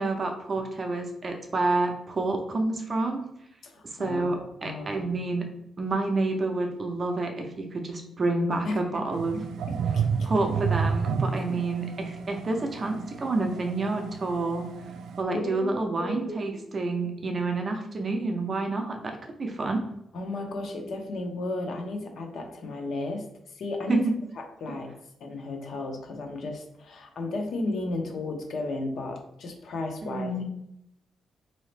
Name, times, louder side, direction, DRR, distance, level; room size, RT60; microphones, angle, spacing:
voice 1, 0.0-3.3 4.0-4.4 4.6-5.5 5.8-9.4 10.2-14.7 15.2-19.8 23.9-24.1 30.0-30.4, right 2 dB, 30° right, 3 dB, 0.5 m, -28 dB
voice 2, 3.6-5.1 8.6-8.8 9.3-9.4 9.7-10.3 11.3-11.6 15.3-16.6 20.1-23.2 23.5-24.1 24.4-24.9 25.2-30.4, left 2 dB, 55° left, 3 dB, 0.7 m, -34 dB
sound 1, 9.1-15.2, right 6 dB, 85° right, 0.3 m, -31 dB
4.0 x 2.7 x 3.2 m, 0.79 s
wide cardioid pair, 170°, 0 cm